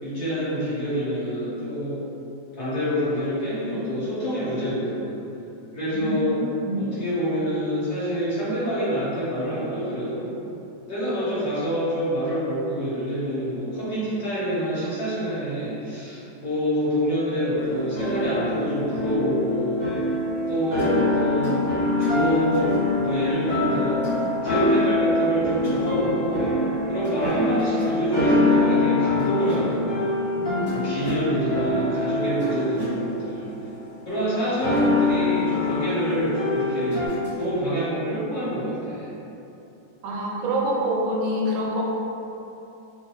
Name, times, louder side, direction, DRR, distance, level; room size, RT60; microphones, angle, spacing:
voice 1, 0.0-2.0 2.6-5.2 5.7-6.4 6.8-10.3 10.9-19.8 20.5-21.7 22.0-24.0 24.4-26.5 26.9-30.1 30.7-33.5 34.0-37.1 37.4-39.1, equal, 50° left, -12 dB, 1.6 m, -26 dB
voice 2, 5.9-6.8 30.4-30.9 40.0-41.8, equal, 85° right, -2 dB, 1.4 m, -26 dB
sound 1, 17.5-34.0 34.6-37.1, left 2 dB, 65° left, 2.1 m, -25 dB
sound 2, 20.8-21.0 21.4-21.7 22.0-22.2 22.5-22.8 24.0-24.3 25.6-25.9 27.0-27.3 27.6-28.0 29.2-29.6 30.7-31.2 32.4-33.0 34.6-34.8 36.9-37.4, left 2 dB, 10° left, 0.9 m, -35 dB
3.6 x 2.7 x 2.9 m, 2.9 s
omnidirectional pair, 2.1 m